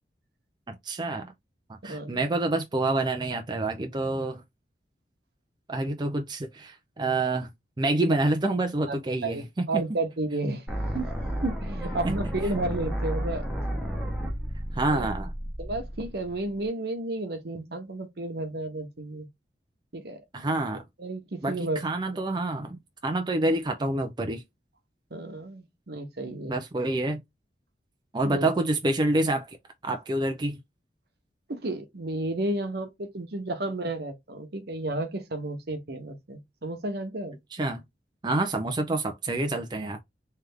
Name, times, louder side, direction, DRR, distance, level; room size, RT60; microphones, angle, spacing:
voice 1, 0.7-1.3 1.8-4.4 5.7-7.5 7.8-9.5 14.7-15.3 20.3-20.8 21.4-22.8 23.0-24.4 26.5-27.2 28.1-29.6 29.8-30.6 37.5-37.8 38.2-40.0, right 2 dB, 25° right, 0.4 m, -27 dB
voice 2, 1.8-2.2 9.2-9.4 9.7-10.6 10.9-11.1 11.4-13.4 14.9-15.1 15.6-19.3 19.9-20.2 21.0-21.8 25.1-26.6 28.2-28.5 31.5-37.3, right 2 dB, 60° right, 1.0 m, -32 dB
sound 1, 10.7-16.6, equal, 5° right, 1.0 m, -32 dB
3.3 x 3.3 x 3.5 m
head